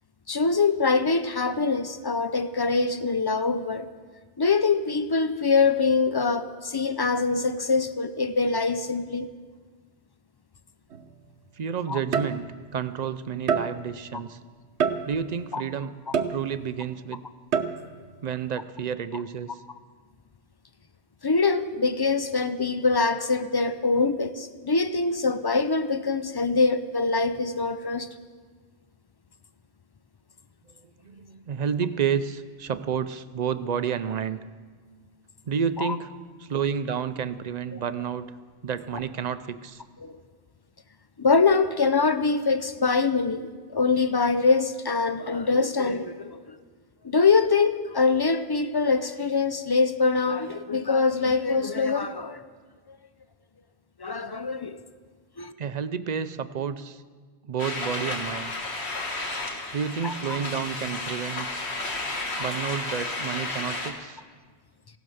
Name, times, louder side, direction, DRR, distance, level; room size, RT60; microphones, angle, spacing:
voice 1, 0.3-3.9 4.4-9.3 11.9-12.0 15.5-15.6 16.1-16.2 21.2-28.1 35.8-36.0 37.7-37.8 40.0-40.2 41.2-46.6 47.0-52.4 54.0-54.8 55.4-55.5 60.0-60.4, left 4 dB, 35° left, 11 dB, 0.4 m, -24 dB
sound 1, 10.9-11.1 12.1-12.8 13.5-14.0 14.8-15.4 16.1-16.8 17.5-18.0, right 6 dB, 75° right, 1.1 m, -27 dB
voice 2, 11.6-12.5 12.7-14.4 15.1-15.9 16.3-17.2 18.2-19.5 31.0-34.4 35.5-36.1 36.4-38.3 38.6-39.8 55.6-57.0 57.4-58.5 59.7-61.5 62.4-64.2, right 7 dB, 50° right, 13 dB, 0.6 m, -30 dB
sound 2, 57.6-63.9, left 2 dB, 70° left, 1.8 m, -32 dB
16.0 x 12.0 x 6.3 m, 1.5 s
omnidirectional pair, 1.1 m